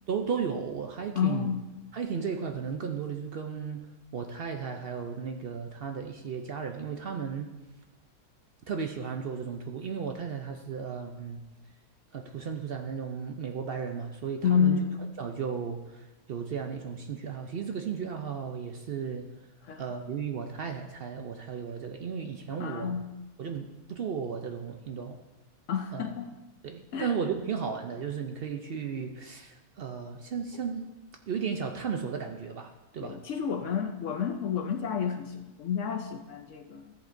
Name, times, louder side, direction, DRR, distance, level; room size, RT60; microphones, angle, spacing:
voice 1, 0.1-1.5 1.9-3.8 4.1-7.5 8.7-11.4 12.1-14.8 15.2-19.3 19.8-22.9 23.4-25.2 25.9-26.0 26.6-30.8 31.3-33.2, right 6 dB, 65° right, 4 dB, 0.5 m, -35 dB
voice 2, 1.1-1.6 14.4-15.0 19.6-19.8 22.6-23.1 25.7-26.3 26.9-27.1 33.0-36.9, left 7 dB, 65° left, 6 dB, 0.8 m, -29 dB
14.0 x 8.0 x 2.6 m, 1.1 s
omnidirectional pair, 1.7 m